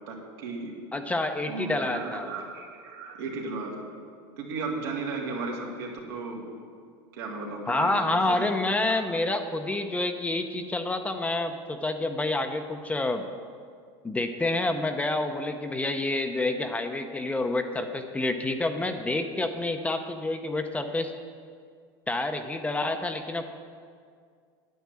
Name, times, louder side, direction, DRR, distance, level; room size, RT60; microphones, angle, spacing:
voice 1, 0.1-0.7 1.5-3.8 4.4-6.5 7.1-8.5 8.9-9.0, right 3 dB, 80° right, -2 dB, 2.7 m, -35 dB
voice 2, 0.9-2.3 7.7-13.2 14.0-21.1 22.1-23.4, left 2 dB, 10° left, 6 dB, 0.7 m, -28 dB
9.4 x 9.3 x 7.5 m, 2.1 s
supercardioid pair, 125°, 12 cm